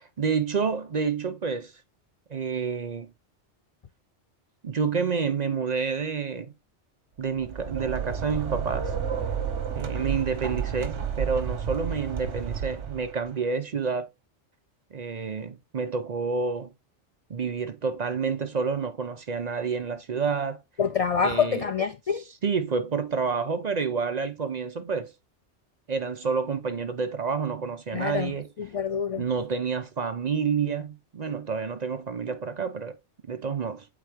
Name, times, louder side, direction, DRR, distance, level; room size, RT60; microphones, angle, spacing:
voice 1, 0.2-1.7 2.3-3.1 4.6-6.5 7.2-9.0 9.7-14.1 14.9-16.7 17.3-20.6 21.2-21.6 22.4-25.1 25.9-28.5 29.2-33.0 33.3-33.9, right 5 dB, 45° right, 0.6 m, -29 dB
sound 1, 7.3-13.3, right 7 dB, 85° right, 1.4 m, -31 dB
voice 2, 20.8-22.2 27.9-28.3 28.6-29.3, left 6 dB, 70° left, 0.3 m, -26 dB
8.4 x 3.7 x 3.4 m
omnidirectional pair, 1.2 m